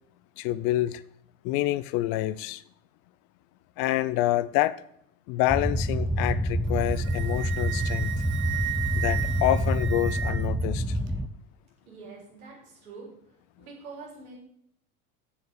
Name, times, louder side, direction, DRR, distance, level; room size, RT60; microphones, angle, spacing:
voice 1, 0.4-1.0 1.4-2.6 3.8-4.8 5.3-8.1 8.9-11.0, left 15 dB, 50° left, 16 dB, 0.6 m, -27 dB
sound 1, 5.5-11.3, equal, ahead, 0.4 m, -27 dB
Wind instrument woodwind instrument, 6.7-10.6, right 14 dB, 25° right, 0.8 m, -35 dB
voice 2, 11.8-13.2 13.6-14.4, right 4 dB, 80° right, -2 dB, 3.9 m, -45 dB
7.5 x 7.2 x 6.7 m, 0.72 s
hypercardioid pair, 85°, 42 cm